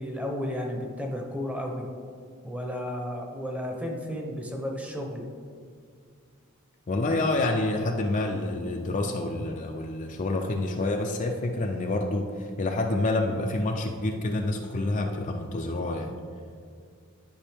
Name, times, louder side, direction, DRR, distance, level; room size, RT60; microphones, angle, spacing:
voice 1, 0.0-1.9 2.4-5.2, left 1 dB, 5° right, 1 dB, 0.8 m, -33 dB
voice 2, 6.9-16.2, left 2 dB, 35° left, 2 dB, 0.4 m, -28 dB
11.0 x 5.4 x 3.5 m, 2.1 s
head